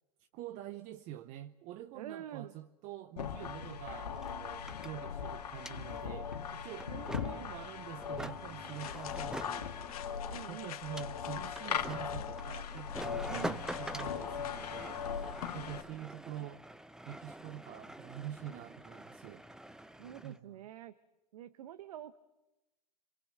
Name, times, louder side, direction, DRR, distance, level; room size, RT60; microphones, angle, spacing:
voice 1, 0.3-6.9 7.2-10.0 10.5-15.3 15.5-16.6 17.1-19.4 19.7-19.9 20.2-20.6, right 12 dB, 40° right, 0.8 m, -46 dB
voice 2, 1.9-2.5 6.9-7.5 10.3-10.7 13.3-13.7 20.0-20.9 21.3-22.2, right 12 dB, 65° right, 1.1 m, -46 dB
sound 1, 3.2-15.8, left 7 dB, 85° left, 2.0 m, -40 dB
sound 2, 3.5-3.6 3.8-20.4, right 1 dB, 5° right, 0.7 m, -47 dB
sound 3, 8.2-15.7, left 12 dB, 65° left, 1.5 m, -50 dB
26.5 x 23.0 x 6.7 m
hypercardioid pair, 120°, 20 cm